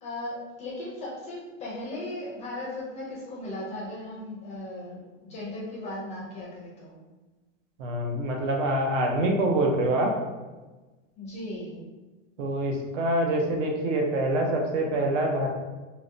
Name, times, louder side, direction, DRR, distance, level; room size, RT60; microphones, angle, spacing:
voice 1, 0.0-7.0 11.2-11.9, left 1 dB, 20° left, -5 dB, 0.4 m, -37 dB
voice 2, 7.8-10.1 12.4-15.5, right 1 dB, 80° right, 1 dB, 0.7 m, -25 dB
2.8 x 2.0 x 2.4 m, 1.2 s
supercardioid pair, 145°, 37 cm